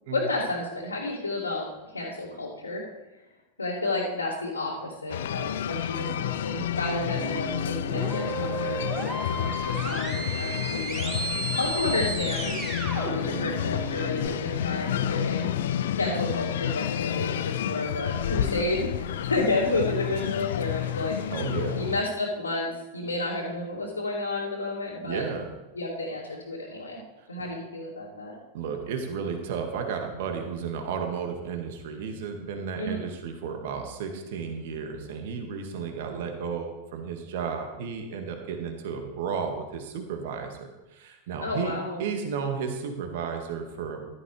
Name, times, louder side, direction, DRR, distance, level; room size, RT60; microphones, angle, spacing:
voice 1, 0.1-1.7 1.9-2.8 3.6-21.4 21.8-25.2 25.7-27.0 27.3-28.4 32.8-33.0 41.4-42.0, left 2 dB, 80° left, -8 dB, 2.5 m, -31 dB
sound 1, 5.1-22.0, left 10 dB, 60° left, 0.5 m, -30 dB
sound 2, 7.1-14.3, right 3 dB, 30° right, 4.1 m, -34 dB
voice 2, 21.3-21.8 25.0-25.5 27.2-27.3 28.5-41.7 42.0-44.1, right 6 dB, 55° right, 4 dB, 1.8 m, -33 dB
15.0 x 12.5 x 3.3 m, 1.0 s
figure-of-eight pair, 90°, 0 cm